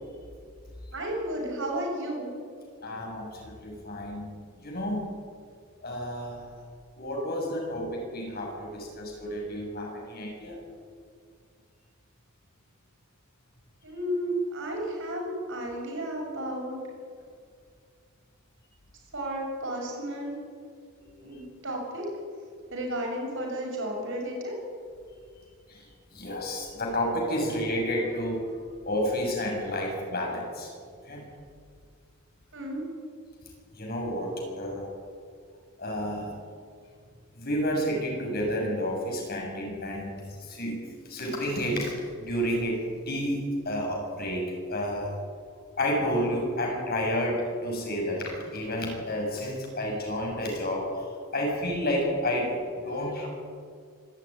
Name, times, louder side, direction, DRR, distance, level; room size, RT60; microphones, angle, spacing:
voice 1, 0.9-2.3 13.8-16.8 19.1-20.4 21.2-22.1 22.7-24.5 32.5-32.9, right 1 dB, 60° right, 0 dB, 7.0 m, -33 dB
voice 2, 2.8-5.1 5.8-6.5 7.0-10.6 21.2-21.4 25.7-25.9 26.1-28.5 28.8-30.7 31.1-31.3 33.7-34.9 35.8-36.3 37.4-45.1 45.8-52.6 52.8-53.3, equal, 45° left, 0 dB, 6.9 m, -30 dB
25.0 x 13.0 x 9.9 m, 2.1 s
head